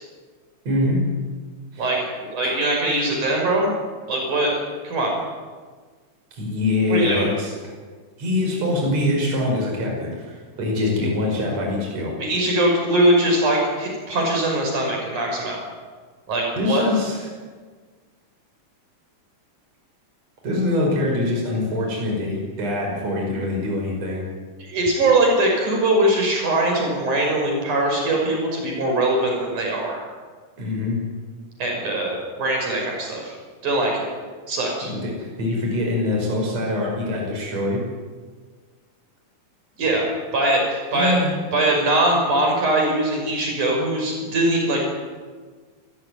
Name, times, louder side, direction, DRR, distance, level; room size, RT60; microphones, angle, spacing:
voice 1, 0.6-1.0 1.7-1.9 2.4-2.5 6.3-7.7 8.2-12.1 16.6-17.3 20.4-24.2 30.6-31.0 34.8-37.8 40.9-41.3, left 2 dB, 55° right, 0 dB, 6.6 m, -24 dB
voice 2, 1.8-3.7 4.1-4.6 4.8-5.2 6.9-7.3 12.2-15.6 16.3-16.8 24.6-30.0 31.6-33.3 33.6-34.1 34.5-34.9 39.8-40.1 40.3-41.2 41.5-44.8, right 1 dB, 75° right, 0 dB, 7.2 m, -21 dB
28.5 x 15.5 x 9.5 m, 1.5 s
omnidirectional pair, 3.6 m